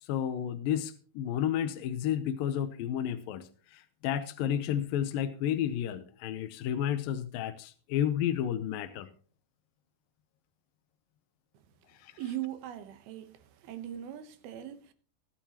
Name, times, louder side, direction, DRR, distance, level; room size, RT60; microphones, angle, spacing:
voice 1, 0.0-9.1 12.0-12.1, left 10 dB, 75° left, 2.3 m, -31 dB
voice 2, 12.2-14.9, right 12 dB, 80° right, 2.9 m, -40 dB
21.0 x 9.2 x 3.0 m
omnidirectional pair, 4.5 m